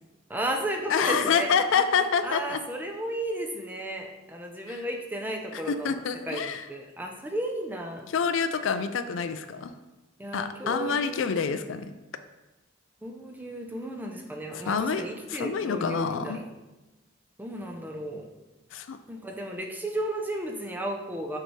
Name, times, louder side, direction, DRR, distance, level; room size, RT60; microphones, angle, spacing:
voice 1, 0.3-1.8 2.2-6.0 6.3-8.1 10.2-11.4 13.0-16.5 17.4-18.3 19.1-21.4, right 1 dB, 10° right, 2 dB, 0.5 m, -34 dB
voice 2, 0.9-2.6 4.7-4.8 5.5-6.6 8.1-9.7 10.3-11.9 14.5-15.0 15.3-16.4 18.7-19.0, left 6 dB, 75° left, 10 dB, 0.4 m, -27 dB
6.6 x 4.6 x 3.2 m, 1.1 s
head